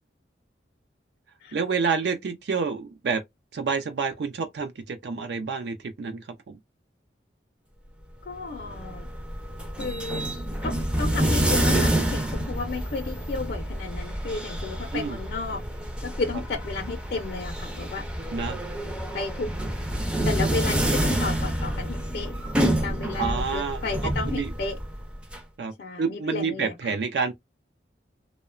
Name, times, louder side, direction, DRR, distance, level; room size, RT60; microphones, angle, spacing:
voice 1, 1.5-3.2 3.5-6.6 14.9-15.2 18.3-18.6 23.2-24.5 25.6-27.3, right 5 dB, 70° right, 0.4 m, -29 dB
voice 2, 8.2-9.1 9.8-10.3 10.6-15.6 16.0-18.3 19.1-19.5 20.2-22.4 22.8-24.8 25.8-26.7, left 4 dB, 60° left, 0.4 m, -33 dB
sound 1, 8.3-25.4, right 1 dB, 5° right, 0.4 m, -28 dB
2.8 x 2.1 x 2.3 m
head